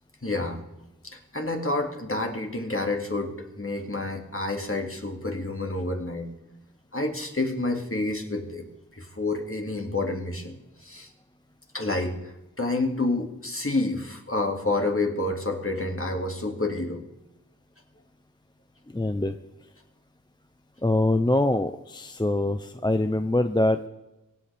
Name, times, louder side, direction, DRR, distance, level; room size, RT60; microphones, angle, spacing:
voice 1, 0.2-0.6 1.0-6.3 6.9-8.7 9.0-11.1 11.7-12.3 12.6-17.0, left 2 dB, 40° left, 3 dB, 2.2 m, -29 dB
voice 2, 18.9-19.3 20.8-23.9, left 1 dB, 15° left, 9 dB, 0.5 m, -24 dB
24.5 x 8.4 x 3.4 m, 0.98 s
wide cardioid pair, 45°, 35 cm